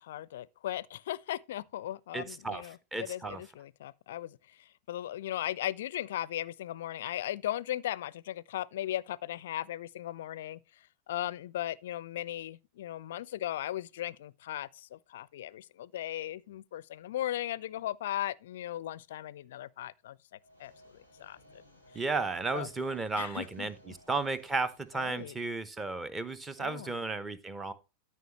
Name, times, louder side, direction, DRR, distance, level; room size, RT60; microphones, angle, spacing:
voice 1, 0.0-20.2 20.6-21.6 22.5-22.7 23.2-23.9 25.0-25.4 26.6-26.9, left 12 dB, 55° left, 0.4 m, -37 dB
voice 2, 2.1-2.6 2.9-3.4 21.9-27.7, right 3 dB, 15° right, 0.8 m, -34 dB
sound 1, 20.4-25.6, left 1 dB, 85° right, 3.3 m, -59 dB
13.0 x 5.1 x 3.0 m
figure-of-eight pair, 90°, 0 cm